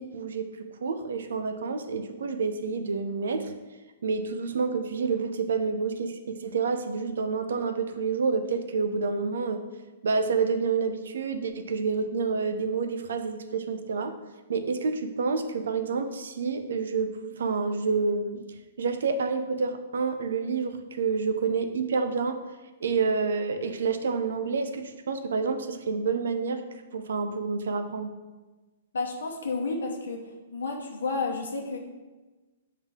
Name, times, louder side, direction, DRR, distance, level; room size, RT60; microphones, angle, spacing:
voice 1, 0.0-3.5 4.0-9.6 10.0-14.1 14.5-18.4 18.8-22.4 22.8-26.6 26.9-28.1, right 4 dB, 75° right, 8 dB, 0.6 m, -28 dB
voice 2, 28.9-31.8, left 3 dB, 85° left, 1 dB, 0.9 m, -31 dB
7.1 x 3.7 x 3.6 m, 1.2 s
hypercardioid pair, 140°, 0 cm